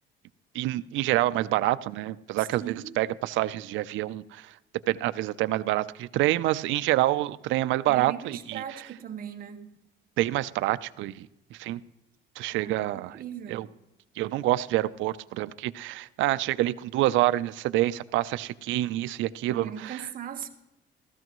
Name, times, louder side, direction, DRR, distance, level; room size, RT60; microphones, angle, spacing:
voice 1, 0.5-4.5 4.9-8.6 10.2-11.8 12.4-13.2 13.5-13.7 14.2-20.0, right 15 dB, 80° right, 0.5 m, -27 dB
voice 2, 2.4-3.0 7.9-9.7 12.5-13.6 19.5-20.5, right 9 dB, 50° right, 1.3 m, -39 dB
15.5 x 13.5 x 3.0 m
cardioid pair, 150°, 20 cm